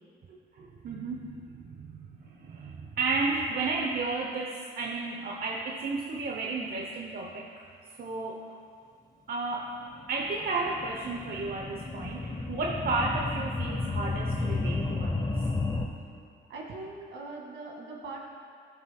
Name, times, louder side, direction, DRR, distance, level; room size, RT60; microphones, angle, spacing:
voice 1, 0.3-7.6 8.0-8.4 9.3-9.7 10.1-15.4, right 3 dB, 50° right, 0 dB, 0.9 m, -33 dB
sound 1, 9.8-15.9, left 3 dB, 20° left, 0.9 m, -32 dB
voice 2, 16.5-18.2, right 3 dB, 75° right, -2 dB, 2.2 m, -41 dB
17.0 x 7.0 x 2.3 m, 2.4 s
cardioid pair, 90°, 20 cm